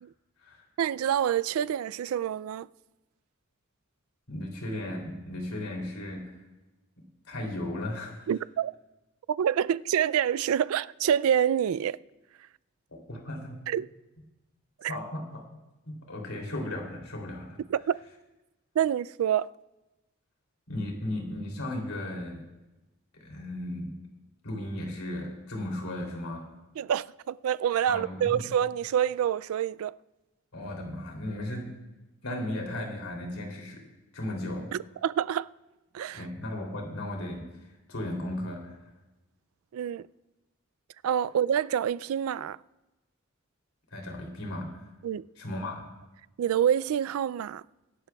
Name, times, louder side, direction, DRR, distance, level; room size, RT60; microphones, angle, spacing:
voice 1, 0.8-2.7 8.3-8.7 9.4-12.0 13.7-13.9 14.8-14.9 17.7-18.0 18.8-19.5 26.8-29.9 34.7-35.5 35.9-36.2 39.7-40.0 41.0-42.6 45.0-45.2 46.4-47.6, right 9 dB, 75° right, 0.3 m, -27 dB
voice 2, 4.3-6.3 7.2-8.3 13.1-13.6 14.9-15.4 15.9-17.6 20.7-22.4 23.2-23.9 24.4-26.5 27.9-28.4 30.5-31.7 32.2-33.8 34.1-34.7 36.1-38.8 43.9-44.9 45.4-45.9, left 1 dB, 85° left, 3.0 m, -35 dB
23.5 x 11.5 x 2.3 m
head